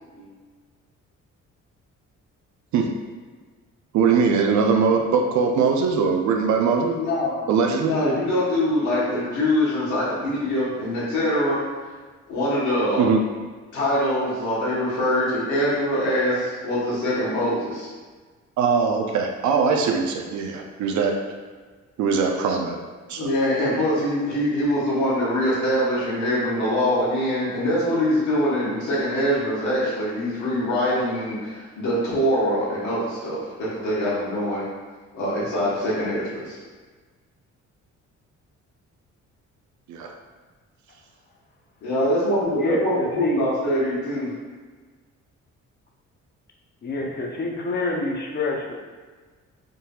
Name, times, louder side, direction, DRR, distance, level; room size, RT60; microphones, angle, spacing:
voice 1, 3.9-7.0 7.5-7.9 13.0-13.2 18.6-21.2 22.0-22.8 23.1-23.3 39.9-40.1, right 5 dB, 70° right, 3 dB, 0.5 m, -21 dB
voice 2, 6.9-7.3 7.9-11.6 12.3-13.1 13.7-17.9 23.2-34.6 35.1-36.6 41.8-44.3, equal, 75° left, -8 dB, 1.2 m, -23 dB
voice 3, 42.6-43.4 46.8-48.7, left 2 dB, 35° left, 0 dB, 0.6 m, -27 dB
3.8 x 2.6 x 2.3 m, 1.4 s
cardioid pair, 90°, 30 cm